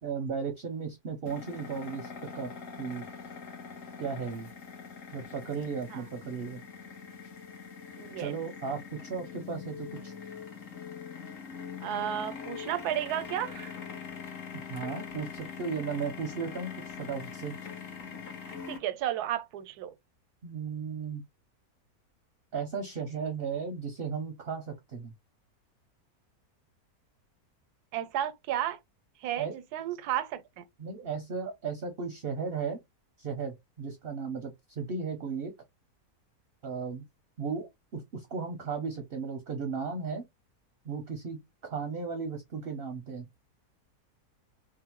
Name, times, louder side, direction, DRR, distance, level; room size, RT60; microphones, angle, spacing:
voice 1, 0.0-2.5 2.8-3.0 4.0-4.5 5.1-6.6 8.2-10.1 14.7-17.6 20.4-21.2 22.5-25.1 29.4-29.6 30.8-32.8 33.2-35.5 36.6-37.0 37.4-40.2 40.8-43.3, right 5 dB, 55° right, 0.7 m, -35 dB
sound 1, 1.3-18.8, left 6 dB, 60° left, 1.2 m, -43 dB
voice 2, 8.0-8.3 11.8-13.7 18.4-19.9 27.9-28.8 29.2-30.6, right 11 dB, 90° right, 1.1 m, -33 dB
3.7 x 2.1 x 2.9 m
omnidirectional pair, 1.6 m